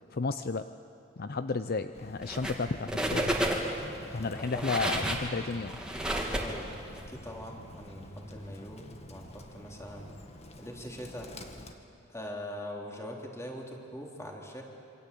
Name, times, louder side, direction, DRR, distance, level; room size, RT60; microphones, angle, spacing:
voice 1, 0.1-0.7 1.2-3.4 4.1-5.8, left 4 dB, 50° left, 10 dB, 0.6 m, -32 dB
Bird, 1.9-11.7, left 1 dB, 30° left, 1.8 m, -48 dB
sound 1, 2.2-2.6 2.9-3.8 4.4-7.0, right 1 dB, 5° right, 2.7 m, -31 dB
voice 2, 4.2-4.8 6.4-6.7 6.9-10.1 10.6-11.3 12.1-14.6, equal, 15° left, 0 dB, 3.5 m, -42 dB
27.5 x 25.0 x 8.6 m, 2.6 s
head